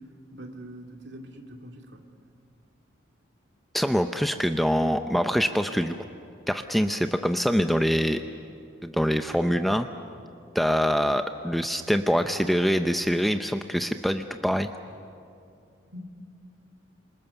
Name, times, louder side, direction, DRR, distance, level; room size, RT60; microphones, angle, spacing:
voice 1, 0.3-2.0 15.9-16.0, right 1 dB, 60° right, 3 dB, 2.4 m, -43 dB
voice 2, 3.7-6.0 6.5-8.2 8.8-9.9 10.5-14.7, equal, ahead, 7 dB, 0.6 m, -24 dB
28.0 x 27.0 x 6.9 m, 2.5 s
head